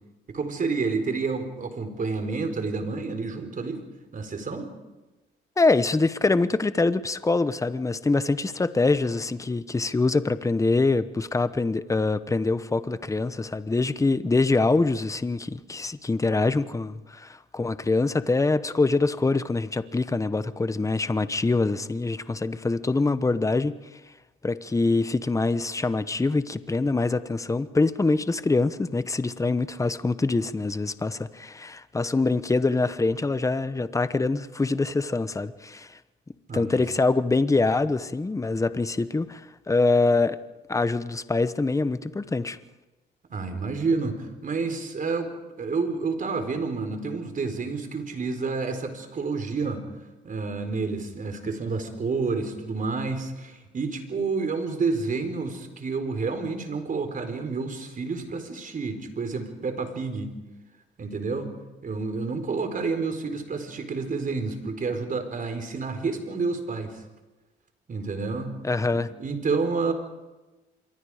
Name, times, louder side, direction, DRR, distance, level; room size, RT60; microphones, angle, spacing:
voice 1, 0.3-3.8 4.1-4.7 36.5-36.8 43.3-45.3 45.6-49.8 50.2-60.3 61.0-67.0 67.9-68.6 68.9-69.9, right 4 dB, 45° right, 4.4 m, -29 dB
voice 2, 5.6-23.7 24.4-36.0 36.5-39.4 39.7-40.4 40.7-42.6 68.6-69.1, left 3 dB, 15° left, 1.0 m, -24 dB
26.5 x 23.5 x 5.0 m
cardioid pair, 90°, 20 cm